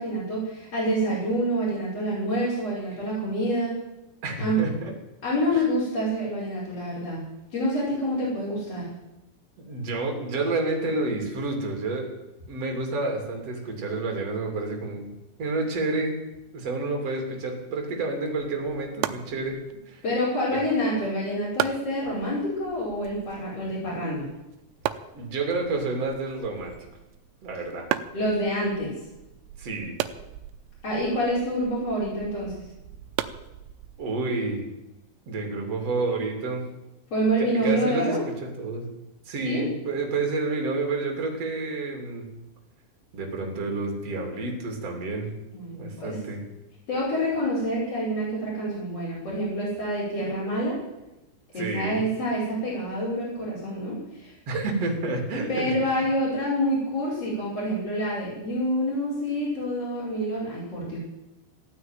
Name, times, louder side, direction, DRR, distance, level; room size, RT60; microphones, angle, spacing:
voice 1, 0.0-3.8 4.4-4.6 5.2-7.2 7.5-8.8 20.0-24.3 28.1-28.9 30.8-32.6 37.1-38.2 39.4-39.6 45.5-46.2 46.9-50.8 51.5-54.3 55.5-61.0, equal, 35° left, -9 dB, 6.2 m, -27 dB
voice 2, 4.2-4.9 5.5-5.6 9.6-12.1 12.5-15.1 15.4-16.2 16.5-19.6 19.9-20.0 20.5-20.6 25.1-26.8 27.4-27.9 29.6-30.0 34.0-34.7 35.3-36.6 37.4-38.9 39.3-42.3 43.1-45.3 45.7-46.4 51.6-52.0 54.5-56.1, right 3 dB, 40° right, 2 dB, 3.5 m, -29 dB
sound 1, 18.3-34.2, right 13 dB, 85° right, 3.0 m, -37 dB
15.0 x 9.5 x 9.2 m, 0.97 s
omnidirectional pair, 5.0 m